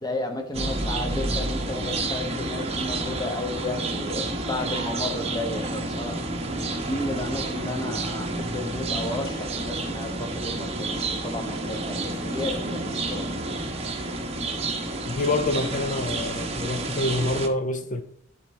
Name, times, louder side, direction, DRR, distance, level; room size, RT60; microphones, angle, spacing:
voice 1, 0.0-6.2 6.7-13.3, left 2 dB, 20° left, 1.1 m, -33 dB
sound 1, 0.5-17.5, right 2 dB, 30° right, 0.9 m, -30 dB
voice 2, 15.1-18.0, left 2 dB, 40° left, 0.7 m, -26 dB
11.0 x 4.3 x 3.2 m
head